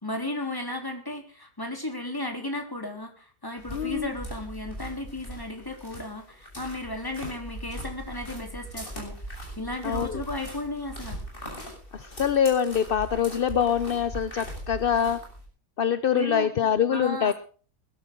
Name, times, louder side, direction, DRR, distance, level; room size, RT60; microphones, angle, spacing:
voice 1, 0.0-9.1 9.6-11.2 16.1-16.5 16.9-17.3, left 2 dB, 10° left, 4 dB, 3.5 m, -34 dB
sound 1, 3.6-15.5, right 1 dB, 30° left, 6.6 m, -40 dB
voice 2, 3.7-4.1 9.8-10.2 11.9-15.2 15.8-17.3, left 8 dB, 50° left, 13 dB, 0.7 m, -24 dB
21.0 x 12.5 x 3.8 m, 0.40 s
omnidirectional pair, 1.7 m